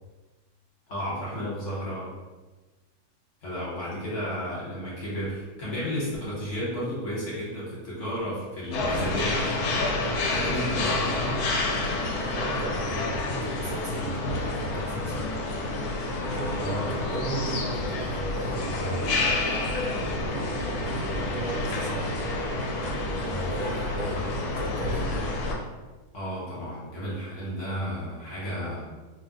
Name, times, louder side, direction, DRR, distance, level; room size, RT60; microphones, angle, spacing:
voice 1, 0.9-2.1 3.4-9.5 10.3-11.4 16.6-17.2 26.1-28.9, equal, 55° left, -7 dB, 1.2 m, -33 dB
sound 1, 8.7-25.5, left 2 dB, 75° left, 1.0 m, -29 dB
voice 2, 12.3-14.3 14.6-15.3 16.2-16.8 17.1-19.1 20.1-22.1 23.2-25.1, right 1 dB, 70° right, -2 dB, 1.0 m, -36 dB
2.7 x 2.0 x 3.7 m, 1.2 s
omnidirectional pair, 1.7 m